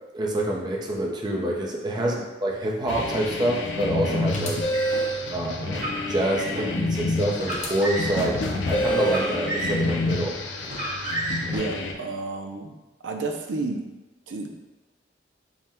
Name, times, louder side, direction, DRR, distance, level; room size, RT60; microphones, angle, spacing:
voice 1, 0.1-4.6 5.3-10.3, right 1 dB, 25° right, -2 dB, 0.5 m, -27 dB
sound 1, 2.9-11.9, left 3 dB, 80° left, 0.4 m, -29 dB
Car, 4.0-5.0 5.7-6.7 7.3-8.3 9.0-10.1 10.6-11.6, right 1 dB, 45° right, 1.0 m, -32 dB
sound 2, 4.3-5.2 7.5-7.7 8.7-9.3, right 2 dB, 40° left, 0.6 m, -26 dB
voice 2, 11.5-12.7 13.0-13.8 14.3-14.5, right 3 dB, 85° right, 3 dB, 0.5 m, -31 dB
3.6 x 2.1 x 4.2 m, 1.1 s
head